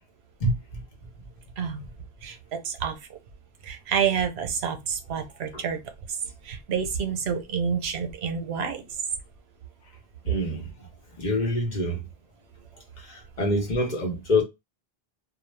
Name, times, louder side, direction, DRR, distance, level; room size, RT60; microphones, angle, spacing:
voice 1, 0.4-0.8 5.5-5.6 6.2-6.3 10.2-10.9 11.2-12.1 13.0-14.4, left 1 dB, 50° left, 0.9 m, -26 dB
voice 2, 1.6-1.9 2.2-3.2 3.6-5.8 6.1-6.2 6.4-8.8, right 7 dB, 90° right, 0.9 m, -29 dB
2.3 x 2.1 x 3.1 m
omnidirectional pair, 1.0 m